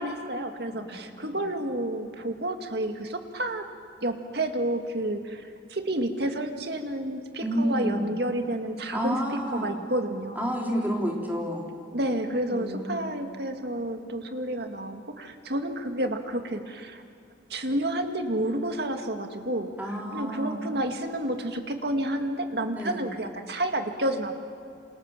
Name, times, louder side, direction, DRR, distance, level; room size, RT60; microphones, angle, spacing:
voice 1, 0.0-3.7 4.0-9.2 9.5-10.5 11.9-17.0 17.5-24.4, right 1 dB, 60° right, 5 dB, 2.2 m, -30 dB
voice 2, 0.7-1.4 7.4-8.1 8.9-9.7 10.4-11.7 12.5-12.9 19.8-20.6 22.7-23.1, equal, 10° right, -1 dB, 3.8 m, -30 dB
28.0 x 27.5 x 7.6 m, 2.3 s
head